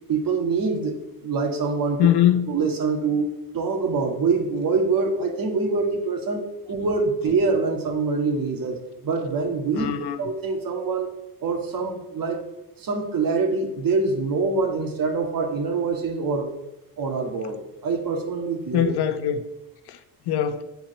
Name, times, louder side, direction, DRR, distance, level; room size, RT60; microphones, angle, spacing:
voice 1, 0.1-1.0 1.2-2.1 2.5-3.3 3.5-9.9 10.2-11.1 11.4-12.4 12.8-16.5 17.0-18.9, right 4 dB, 55° right, 1.9 m, -25 dB
voice 2, 2.0-2.5 9.7-10.2 18.7-19.4 19.9-20.0 20.3-20.6, left 11 dB, 70° left, 1.0 m, -21 dB
8.2 x 4.6 x 6.7 m
supercardioid pair, 80°, 41 cm